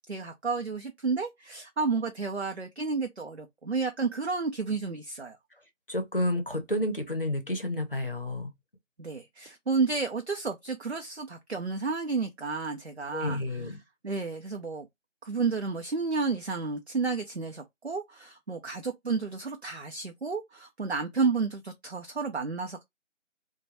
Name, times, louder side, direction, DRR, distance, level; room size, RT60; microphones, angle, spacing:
voice 1, 0.1-5.4 9.0-13.4 14.0-14.9 15.2-22.8, right 4 dB, 60° right, 0.6 m, -31 dB
voice 2, 5.9-8.5 13.1-13.8, left 1 dB, 45° left, 0.7 m, -30 dB
3.1 x 2.2 x 2.8 m
figure-of-eight pair, 180°, 37 cm